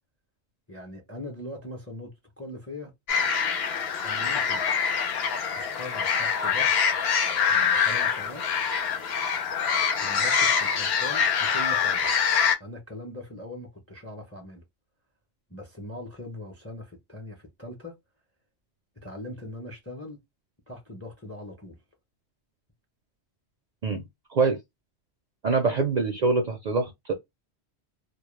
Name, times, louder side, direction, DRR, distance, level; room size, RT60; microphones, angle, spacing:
voice 1, 0.7-2.1 2.4-2.9 4.0-4.6 5.6-6.7 7.5-8.4 10.0-12.1 12.6-14.6 15.5-18.0 19.0-20.2 20.7-21.8, left 1 dB, 20° left, 0.5 m, -41 dB
sound 1, 3.1-12.6, left 6 dB, 70° left, 0.8 m, -25 dB
voice 2, 25.4-27.1, right 4 dB, 55° right, 0.5 m, -24 dB
2.2 x 2.1 x 3.0 m
omnidirectional pair, 1.1 m